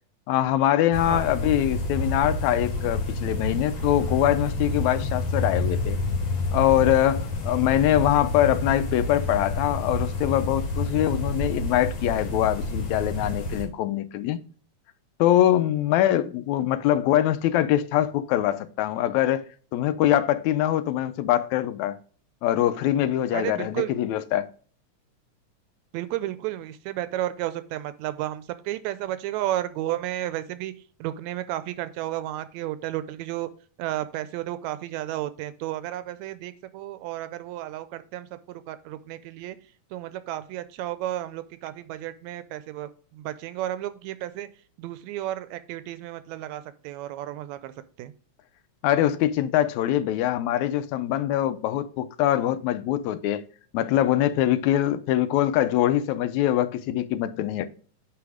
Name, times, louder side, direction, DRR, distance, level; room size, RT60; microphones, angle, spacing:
voice 1, 0.3-6.0 6.5-14.4 15.2-19.4 19.7-22.0 22.4-24.5 48.8-53.4 53.7-57.7, left 12 dB, 80° left, 1.9 m, -23 dB
sound 1, 0.9-13.6, left 2 dB, 65° left, 3.1 m, -28 dB
voice 2, 23.3-23.9 25.9-30.7 31.0-33.5 33.8-39.6 39.9-44.5 44.8-47.7 48.0-48.1, right 13 dB, 80° right, 1.8 m, -32 dB
9.6 x 3.4 x 4.8 m
omnidirectional pair, 3.3 m